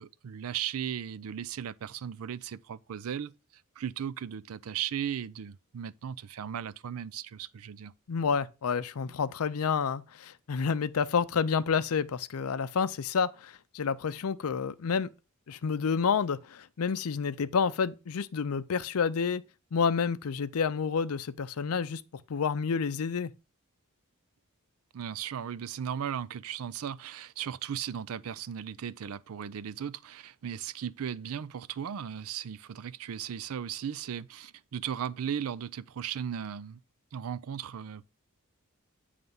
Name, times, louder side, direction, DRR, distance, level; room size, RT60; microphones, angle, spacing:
voice 1, 0.0-3.3 3.8-7.9 24.9-36.8 37.1-38.0, right 8 dB, 70° right, 0.4 m, -36 dB
voice 2, 8.1-15.1 15.5-19.4 19.7-22.0 22.3-23.3, left 6 dB, 75° left, 0.5 m, -29 dB
9.2 x 3.4 x 5.3 m
head